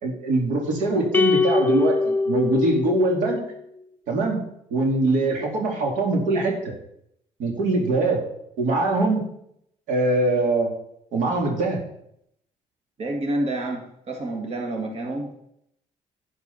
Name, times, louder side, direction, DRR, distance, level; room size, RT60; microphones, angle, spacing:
voice 1, 0.0-3.4 4.1-4.4 4.7-6.5 7.4-8.2 8.6-9.2 9.9-10.7 11.1-11.8, right 2 dB, 85° right, 1 dB, 2.8 m, -22 dB
sound 1, 1.1-3.6, left 4 dB, 15° left, 0.7 m, -22 dB
voice 2, 13.0-13.8 14.1-15.5, right 1 dB, 55° right, 2 dB, 2.1 m, -28 dB
11.0 x 9.6 x 4.2 m, 0.74 s
cardioid pair, 90°, 13 cm